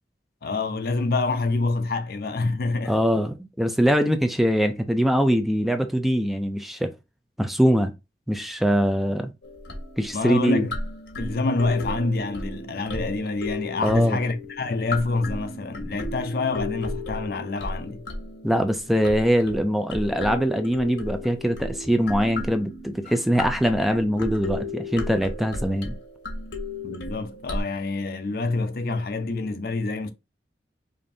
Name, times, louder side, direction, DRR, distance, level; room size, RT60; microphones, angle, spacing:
voice 1, 0.4-3.0 10.1-10.8 11.2-18.0 26.8-30.1, left 3 dB, 60° left, 0.5 m, -27 dB
voice 2, 2.9-6.9 7.4-7.9 8.3-9.3 10.0-10.7 13.8-14.2 18.4-26.0, equal, ahead, 0.3 m, -22 dB
sound 1, 9.4-27.6, left 2 dB, 85° left, 1.0 m, -35 dB
5.1 x 2.5 x 2.6 m
head